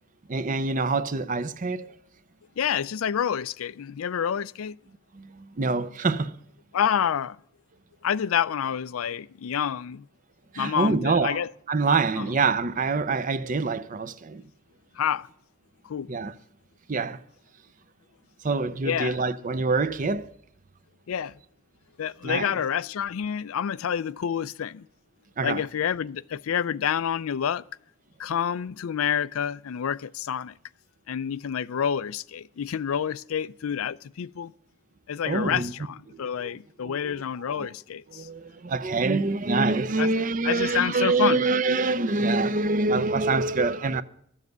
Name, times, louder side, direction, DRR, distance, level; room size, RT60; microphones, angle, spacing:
voice 1, 0.3-1.9 5.1-6.4 10.5-11.4 11.7-14.4 16.1-16.3 16.9-17.2 18.4-20.3 22.2-22.5 25.4-25.6 35.2-35.7 36.2-36.5 36.8-37.1 37.6-37.7 38.1-44.0, right 3 dB, 40° right, 0.6 m, -25 dB
voice 2, 2.6-4.8 6.7-7.4 8.0-10.0 10.6-11.5 12.2-12.3 15.0-15.3 15.8-16.1 18.8-19.2 21.1-21.3 22.0-24.9 25.4-27.6 28.2-30.5 31.1-34.5 35.1-38.3 40.0-40.1 40.4-41.5, left 8 dB, 85° left, 0.4 m, -28 dB
13.5 x 7.4 x 8.0 m
head